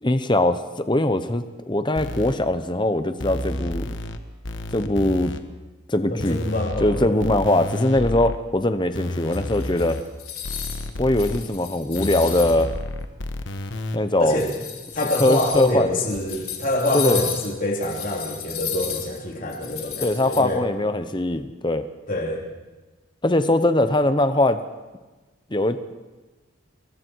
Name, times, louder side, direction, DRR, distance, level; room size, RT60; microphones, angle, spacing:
voice 1, 0.0-3.8 4.7-5.3 5.9-6.4 6.8-10.0 11.0-12.7 13.9-14.4 15.2-15.9 16.9-17.2 20.0-21.8 23.2-24.6 25.5-25.9, left 1 dB, 20° left, 10 dB, 0.9 m, -21 dB
sound 1, 2.0-2.3 3.2-4.2 4.4-5.4 6.2-8.4 8.9-10.0 10.4-11.4 11.9-14.0, left 1 dB, 55° left, 1.3 m, -31 dB
voice 2, 6.1-7.2 14.2-14.5 15.0-20.6 22.1-22.4, left 1 dB, 40° left, -1 dB, 3.5 m, -25 dB
sound 2, 9.3-10.9 11.2-12.6 13.3-13.4 14.2-20.4, left 10 dB, 90° left, 3.9 m, -33 dB
27.5 x 22.0 x 4.7 m, 1.2 s
head